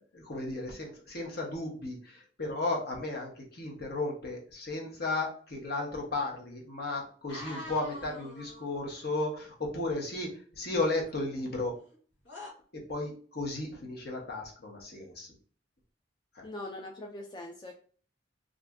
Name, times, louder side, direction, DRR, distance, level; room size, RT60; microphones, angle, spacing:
voice 1, 0.1-11.8 12.7-15.3 16.3-16.5, left 2 dB, 60° left, -1 dB, 1.0 m, -34 dB
sound 1, 7.3-8.9 10.8-11.9 12.2-12.5, left 1 dB, 85° left, 1.1 m, -45 dB
voice 2, 16.4-17.7, left 1 dB, 25° left, 2 dB, 0.3 m, -41 dB
2.5 x 2.5 x 3.3 m, 0.44 s
head